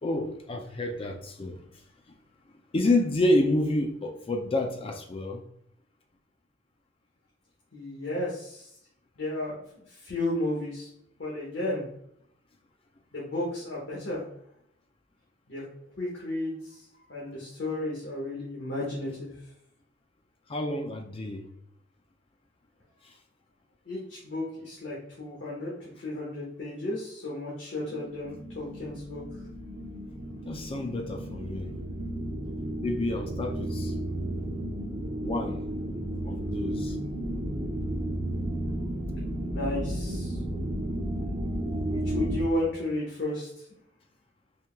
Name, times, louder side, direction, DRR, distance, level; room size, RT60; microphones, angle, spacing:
voice 1, 0.0-1.6 2.7-5.4 20.5-21.5 30.4-31.7 32.8-33.9 35.2-35.6 36.2-37.0, left 1 dB, 30° left, 0.4 m, -29 dB
voice 2, 7.7-8.7 9.2-10.9 11.2-11.8 13.1-14.2 15.5-15.6 16.0-19.3 23.8-29.2 39.5-40.4 41.8-43.5, left 1 dB, 70° left, 1.3 m, -33 dB
sound 1, 27.9-42.4, right 1 dB, 35° right, 0.6 m, -33 dB
4.4 x 3.5 x 2.2 m
head